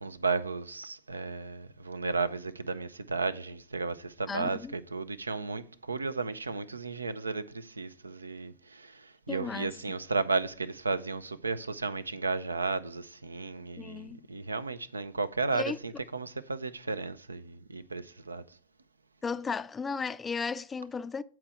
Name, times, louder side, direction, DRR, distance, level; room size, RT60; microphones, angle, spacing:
voice 1, 0.0-18.6, right 4 dB, 80° right, 0.5 m, -34 dB
voice 2, 4.3-4.7 9.3-9.7 13.8-14.2 15.5-15.8 19.2-21.2, left 5 dB, 15° left, 0.3 m, -35 dB
8.6 x 4.5 x 6.2 m
figure-of-eight pair, 90°, 0 cm